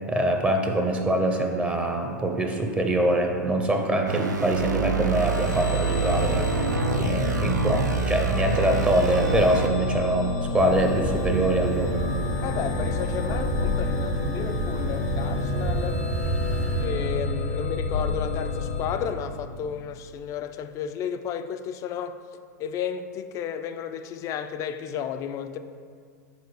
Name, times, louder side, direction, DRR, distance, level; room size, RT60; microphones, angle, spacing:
voice 1, 0.1-6.5 6.9-12.0, right 1 dB, 15° right, 3 dB, 0.6 m, -24 dB
sound 1, 4.1-9.7, right 5 dB, 80° right, 0.5 m, -27 dB
sound 2, 5.1-19.8, left 3 dB, 70° left, 0.7 m, -30 dB
sound 3, 10.5-16.9, right 3 dB, 45° right, 0.9 m, -30 dB
voice 2, 12.4-16.1 16.8-22.2 22.6-25.6, left 8 dB, 35° left, 10 dB, 0.3 m, -32 dB
6.8 x 3.9 x 4.8 m, 2.1 s
figure-of-eight pair, 95°, 10 cm